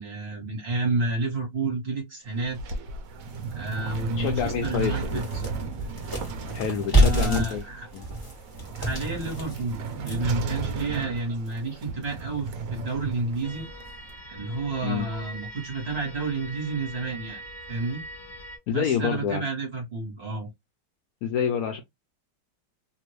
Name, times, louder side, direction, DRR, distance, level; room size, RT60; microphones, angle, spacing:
voice 1, 0.0-2.6 3.5-5.4 6.9-7.9 8.8-13.6 14.3-17.4 17.7-18.0 18.7-20.5, right 3 dB, 40° right, 1.4 m, -30 dB
sound 1, 2.2-14.1, right 4 dB, 65° right, 0.9 m, -35 dB
sound 2, 3.3-3.4 3.9-4.0 4.4-10.4, right 1 dB, 15° left, 1.3 m, -27 dB
voice 2, 4.2-5.2 6.5-7.6 7.9-8.1 14.8-15.1 18.7-19.4 21.2-21.8, left 8 dB, 70° left, 0.9 m, -27 dB
sound 3, 13.4-18.6, right 1 dB, 35° left, 0.9 m, -42 dB
2.9 x 2.5 x 3.0 m
omnidirectional pair, 1.9 m